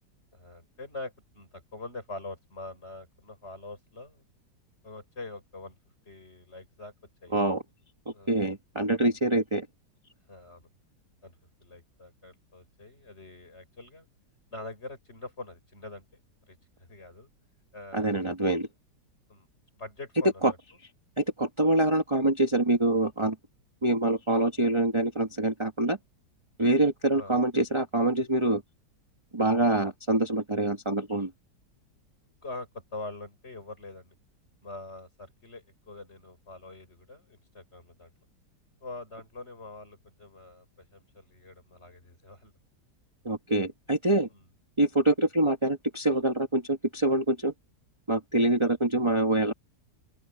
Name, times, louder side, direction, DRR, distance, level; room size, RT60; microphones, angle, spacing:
voice 1, 0.3-4.2 4.8-5.8 6.0-6.9 7.2-7.4 8.1-8.4 10.3-10.7 11.2-11.4 11.6-14.1 14.5-16.2 16.5-17.3 17.7-18.3 19.3-19.5 19.7-20.4 27.1-27.4 32.4-34.2 34.6-38.1 38.8-42.5 48.6-48.7, left 2 dB, 35° left, 6.8 m, -44 dB
voice 2, 7.3-7.6 8.3-9.7 17.9-18.7 20.4-20.5 21.2-23.4 23.8-26.0 26.6-28.6 29.3-31.3 43.2-44.3 44.8-47.5 48.1-49.5, right 2 dB, 15° right, 1.5 m, -25 dB
open air
omnidirectional pair, 1.9 m